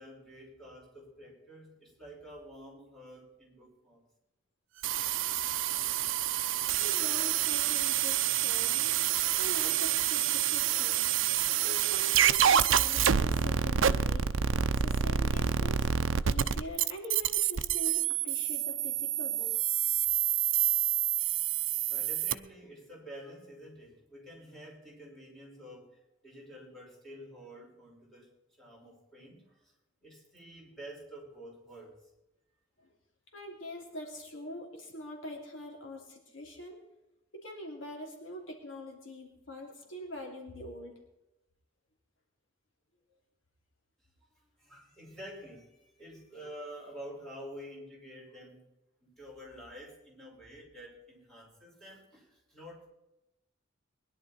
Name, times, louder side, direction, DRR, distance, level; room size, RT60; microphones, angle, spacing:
voice 1, 0.0-4.0 21.9-28.3 28.6-29.7 30.0-32.0 44.0-48.6 49.0-52.9, equal, ahead, -4 dB, 5.5 m, -49 dB
sound 1, 4.8-22.3, right 9 dB, 75° right, 0.6 m, -28 dB
voice 2, 6.8-9.0 9.4-11.0 11.6-15.8 16.3-19.5 32.8-32.9 33.3-36.8 37.3-41.0, left 1 dB, 75° left, 1 dB, 3.0 m, -44 dB
21.0 x 11.0 x 4.3 m, 0.91 s
head